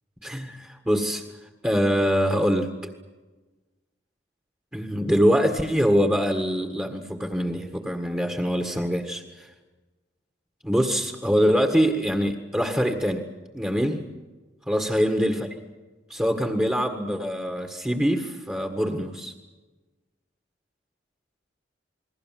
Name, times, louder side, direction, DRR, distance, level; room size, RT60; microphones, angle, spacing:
voice 1, 0.2-1.2 1.6-2.7 4.7-9.5 10.6-13.2 13.5-14.0 14.7-15.5 16.1-19.3, equal, 10° right, 3 dB, 1.7 m, -24 dB
29.0 x 21.5 x 7.6 m, 1.2 s
head